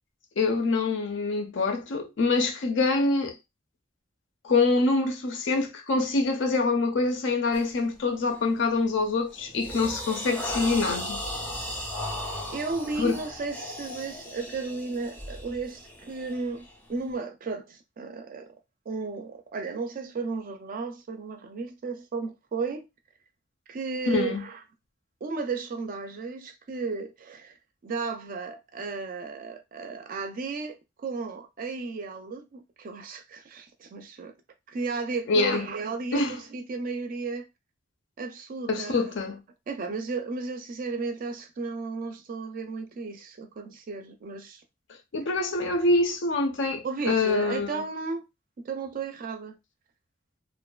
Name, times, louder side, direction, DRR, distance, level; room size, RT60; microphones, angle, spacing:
voice 1, 0.4-3.4 4.4-11.2 13.0-13.2 24.1-24.4 35.3-35.6 36.1-36.4 38.7-39.4 45.1-47.8, left 3 dB, 65° left, 0.5 m, -25 dB
sound 1, 7.5-7.8 8.3-8.6 9.0-17.1, left 1 dB, 10° left, 0.5 m, -37 dB
voice 2, 12.5-16.6 16.9-18.5 18.9-22.9 23.7-24.6 25.2-27.6 27.8-34.3 34.7-37.5 38.2-39.1 39.7-44.6 46.8-48.2 48.6-49.6, right 4 dB, 45° right, 0.4 m, -34 dB
2.5 x 2.2 x 2.2 m
head